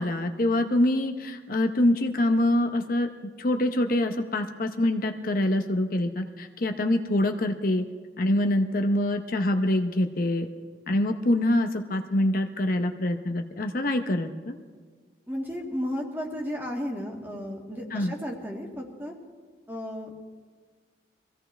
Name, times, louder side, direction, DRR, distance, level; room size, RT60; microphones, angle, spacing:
voice 1, 0.0-3.1 3.4-7.8 8.2-10.5 10.9-14.6 17.9-18.1, left 1 dB, 50° left, 6 dB, 0.8 m, -25 dB
voice 2, 15.3-19.1 19.7-20.1, equal, 10° right, 0 dB, 1.9 m, -33 dB
23.5 x 16.0 x 3.3 m, 1.5 s
head